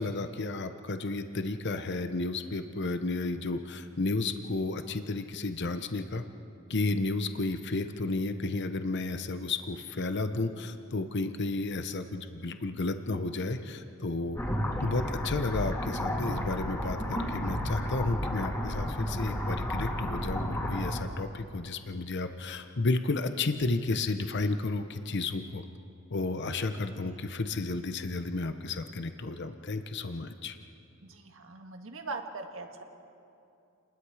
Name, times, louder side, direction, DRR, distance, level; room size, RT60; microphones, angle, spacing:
voice 1, 0.0-6.2 6.7-14.4 14.8-25.6 26.1-30.6, left 3 dB, 55° left, 8 dB, 0.9 m, -32 dB
sound 1, 14.4-21.0, equal, 15° left, 2.6 m, -32 dB
voice 2, 31.0-32.8, right 3 dB, 70° right, 4 dB, 1.8 m, -41 dB
30.0 x 20.5 x 4.9 m, 2.6 s
head